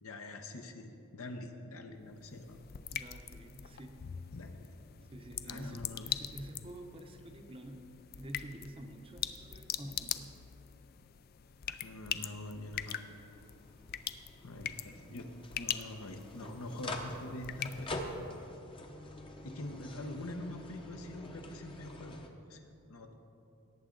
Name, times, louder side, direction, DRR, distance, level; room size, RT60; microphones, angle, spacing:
voice 1, 0.0-2.6 4.4-4.7 5.5-6.1 11.7-13.1 14.4-17.9 19.4-22.2 22.5-22.6 22.9-23.2, left 1 dB, 75° left, 5 dB, 1.0 m, -44 dB
sound 1, 2.0-18.4, left 10 dB, 45° left, 0.4 m, -43 dB
voice 2, 2.9-4.1 5.1-7.9 8.2-10.3, right 1 dB, 25° right, 4 dB, 0.7 m, -48 dB
sound 2, 12.6-22.3, left 1 dB, 25° left, 0.8 m, -46 dB
17.5 x 8.4 x 3.9 m, 2.7 s
head